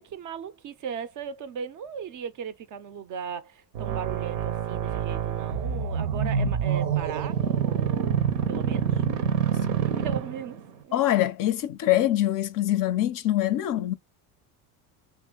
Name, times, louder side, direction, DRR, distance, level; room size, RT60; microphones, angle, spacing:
voice 1, 0.0-9.0 9.8-11.0, right 7 dB, 40° right, 0.4 m, -37 dB
sound 1, 3.7-10.7, right 7 dB, 85° right, 0.8 m, -27 dB
voice 2, 10.9-13.9, left 13 dB, 45° left, 0.4 m, -24 dB
2.9 x 2.5 x 3.7 m
supercardioid pair, 90°, 48 cm